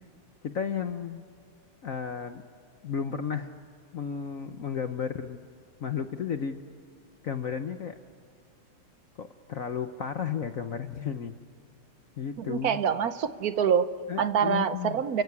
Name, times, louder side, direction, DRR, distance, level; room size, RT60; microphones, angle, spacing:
voice 1, 0.4-1.2 1.8-2.4 2.8-3.5 3.9-5.4 5.8-6.6 7.2-8.0 9.2-11.3 12.2-12.8 14.1-15.0, left 7 dB, 60° left, 8 dB, 0.9 m, -33 dB
voice 2, 12.4-13.9 14.2-15.2, right 7 dB, 60° right, 12 dB, 1.0 m, -26 dB
29.0 x 16.5 x 9.7 m, 2.4 s
omnidirectional pair, 2.4 m